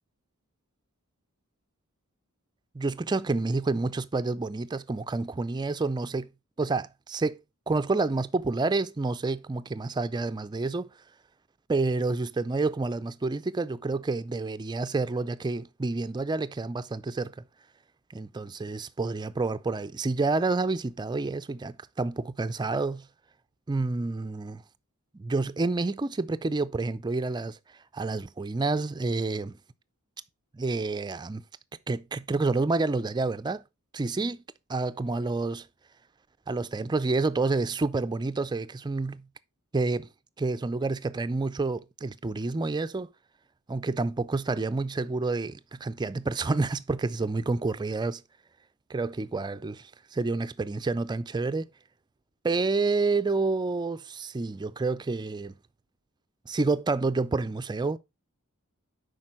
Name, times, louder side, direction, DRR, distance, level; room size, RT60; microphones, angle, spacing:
voice 1, 2.7-6.3 6.6-7.4 7.7-10.9 11.7-17.3 18.1-23.1 23.7-24.6 25.1-27.6 27.9-29.6 30.5-31.4 31.9-33.6 33.9-34.4 34.7-35.7 36.5-39.3 39.7-40.1 40.4-43.1 43.7-48.2 48.9-51.7 52.4-55.6 56.5-58.0, right 3 dB, 20° right, 0.4 m, -29 dB
7.6 x 5.2 x 4.3 m
head